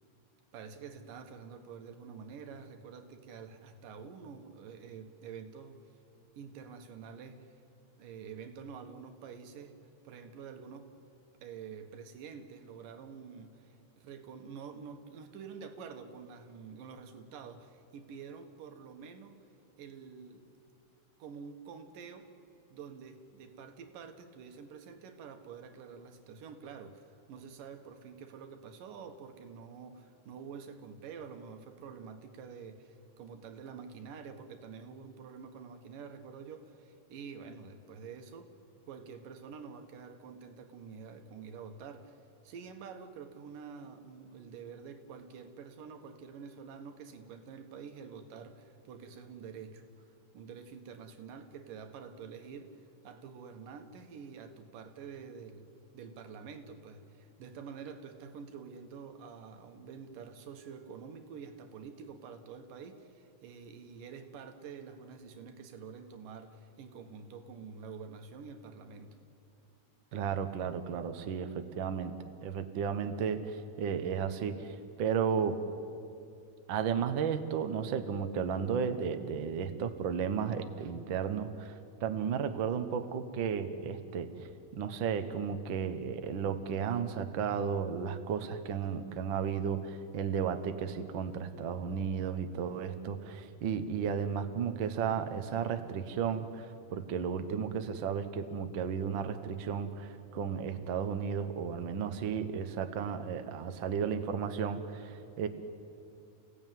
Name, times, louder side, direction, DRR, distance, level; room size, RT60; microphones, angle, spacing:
voice 1, 0.5-5.8 6.3-7.5 8.0-9.8 10.0-10.9 11.4-19.4 19.8-20.5 21.2-22.3 22.7-38.5 38.9-42.2 42.4-50.1 50.3-55.7 55.9-69.2, right 6 dB, 90° right, 7 dB, 3.1 m, -48 dB
voice 2, 70.1-72.1 72.4-75.6 76.7-105.5, right 7 dB, 60° right, 8 dB, 1.3 m, -34 dB
29.5 x 16.5 x 9.3 m, 2.6 s
omnidirectional pair, 3.7 m